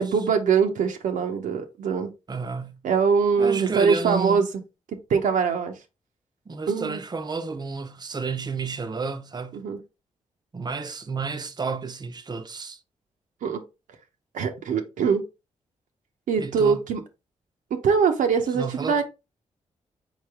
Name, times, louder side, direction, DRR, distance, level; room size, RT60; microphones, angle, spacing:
voice 1, 0.0-2.1 2.8-4.5 5.1-5.8 6.7-7.0 9.5-9.8 13.4-13.6 14.3-15.2 16.3-17.0 17.7-19.0, right 6 dB, 80° right, 0.7 m, -23 dB
voice 2, 2.3-2.8 3.4-4.5 6.5-9.6 10.5-12.8 16.4-16.8 18.5-19.0, right 4 dB, 30° right, 0.6 m, -31 dB
3.9 x 3.2 x 3.5 m
supercardioid pair, 55°, 13 cm